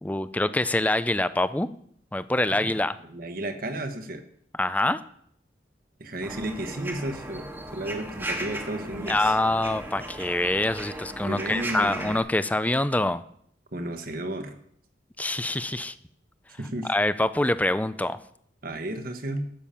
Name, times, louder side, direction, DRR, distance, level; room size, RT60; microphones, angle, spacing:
voice 1, 0.0-1.7 2.1-3.0 4.6-5.0 9.1-13.2 15.2-15.9 16.9-18.2, left 1 dB, 10° left, 14 dB, 0.4 m, -25 dB
voice 2, 3.1-4.2 6.0-9.4 11.2-12.2 13.7-14.6 16.6-16.9 18.6-19.5, right 1 dB, 50° right, 7 dB, 1.2 m, -33 dB
sound 1, 6.2-12.2, right 1 dB, 10° right, 1.3 m, -37 dB
12.0 x 7.1 x 5.7 m, 0.66 s
head